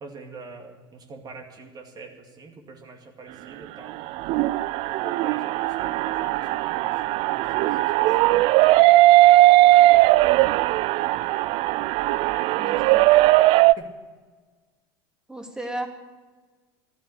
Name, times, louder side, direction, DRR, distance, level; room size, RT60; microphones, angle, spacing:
voice 1, 0.0-4.0 4.7-8.4 9.6-10.6 13.8-13.9, right 4 dB, 35° right, 4 dB, 2.3 m, -44 dB
sound 1, 3.9-13.7, right 17 dB, 50° right, 0.4 m, -18 dB
voice 2, 12.6-13.0 15.3-15.9, right 1 dB, 5° right, 2 dB, 2.7 m, -34 dB
14.5 x 12.5 x 6.7 m, 1.3 s
hypercardioid pair, 80°, 12 cm